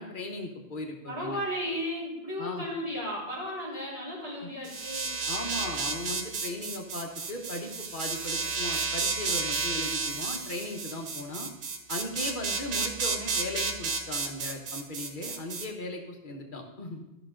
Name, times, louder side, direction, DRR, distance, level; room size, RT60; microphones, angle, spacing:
voice 1, 0.0-1.4 2.4-2.7 4.4-4.5 5.3-11.5 11.9-17.0, left 1 dB, 45° left, 2 dB, 1.3 m, -37 dB
voice 2, 1.0-5.1, equal, 30° right, -8 dB, 3.5 m, -34 dB
sound 1, 4.6-15.7, right 4 dB, 85° right, 1.2 m, -32 dB
13.5 x 6.0 x 3.8 m, 0.98 s
omnidirectional pair, 1.2 m